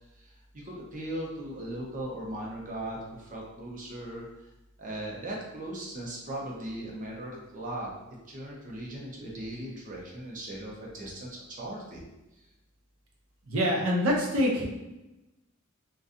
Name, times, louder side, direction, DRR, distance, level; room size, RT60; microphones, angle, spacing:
voice 1, 0.0-4.2 4.8-7.9 8.3-12.0 12.4-12.5, right 1 dB, 40° right, -3 dB, 0.6 m, -38 dB
voice 2, 13.5-14.7, equal, 75° right, -1 dB, 0.6 m, -25 dB
2.5 x 2.2 x 2.5 m, 0.97 s
head